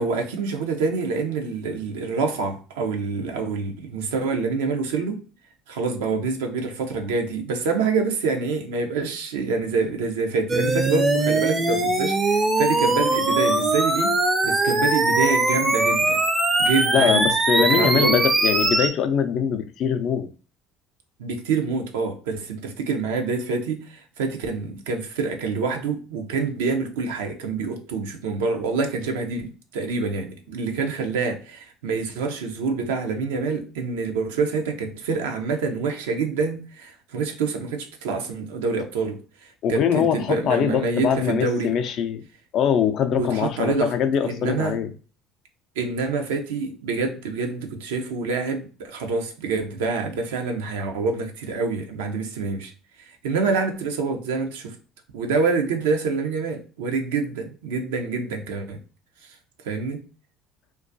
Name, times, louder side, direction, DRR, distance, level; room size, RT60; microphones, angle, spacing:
voice 1, 0.0-5.2 5.7-14.1 14.4-16.2 16.6-17.3 17.6-18.2 21.2-41.7 43.1-43.9 44.2-44.8 45.8-52.7 53.0-54.8 55.1-58.8 59.2-59.4 59.6-60.0, right 4 dB, 80° right, 0.4 m, -26 dB
sound 1, 10.5-18.9, right 2 dB, 25° right, 0.4 m, -21 dB
voice 2, 16.9-20.3 39.6-42.2 42.5-44.9, left 8 dB, 60° left, 0.3 m, -22 dB
2.3 x 2.2 x 2.5 m
hypercardioid pair, 70°, 0 cm